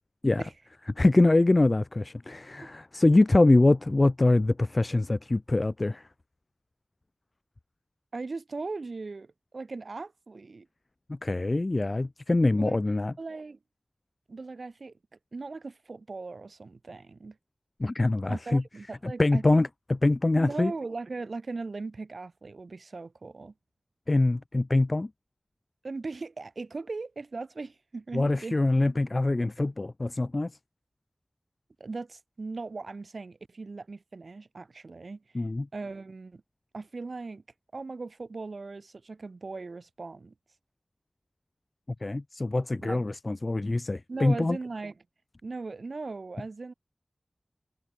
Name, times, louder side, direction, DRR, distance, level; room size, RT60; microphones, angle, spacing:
voice 1, 1.0-6.0 11.1-13.1 17.8-18.6 19.0-20.7 24.1-25.1 28.1-30.5 35.3-35.7 42.0-44.6, left 2 dB, 45° left, 1.0 m, -24 dB
voice 2, 8.1-10.7 12.6-12.8 13.2-13.6 14.3-14.9 15.3-17.3 18.3-19.7 20.3-23.5 25.8-28.6 31.8-35.2 35.7-36.4 36.7-37.4 37.7-40.3 42.8-43.0 44.1-44.9 45.4-46.7, right 3 dB, 75° right, 3.4 m, -38 dB
wide cardioid pair, 55°, 0 cm